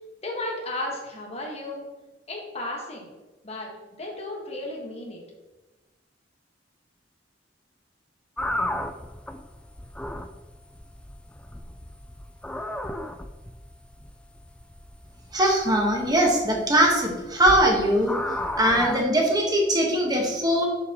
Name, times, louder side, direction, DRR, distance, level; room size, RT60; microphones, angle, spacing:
voice 1, 0.2-1.8 2.3-3.1 3.4-3.7 4.0-5.2, left 2 dB, 35° left, -1 dB, 1.6 m, -34 dB
sound 1, 8.4-19.0, left 1 dB, 5° left, 0.3 m, -34 dB
voice 2, 15.3-18.2 18.6-20.6, right 1 dB, 20° right, 0 dB, 1.4 m, -21 dB
6.8 x 6.8 x 3.0 m, 1.1 s
head